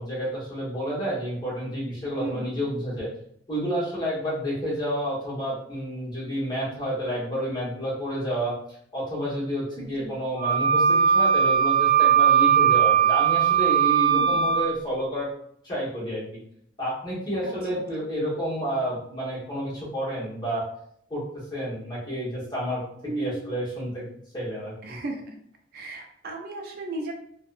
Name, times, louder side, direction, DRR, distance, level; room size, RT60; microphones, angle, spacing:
voice 1, 0.0-3.1 3.5-8.5 8.9-15.3 15.6-16.2 16.8-20.6 21.1-21.2 21.5-22.8 23.2-24.0 24.3-25.0, equal, 25° left, -8 dB, 1.0 m, -30 dB
voice 2, 2.2-2.5 9.8-10.1 14.1-14.4 17.4-17.5 23.0-23.4 24.8-25.3 25.7-27.1, right 2 dB, 55° right, 3 dB, 0.4 m, -34 dB
Wind instrument woodwind instrument, 10.4-14.7, right 8 dB, 30° right, 0.8 m, -19 dB
2.7 x 2.0 x 2.4 m, 0.68 s
head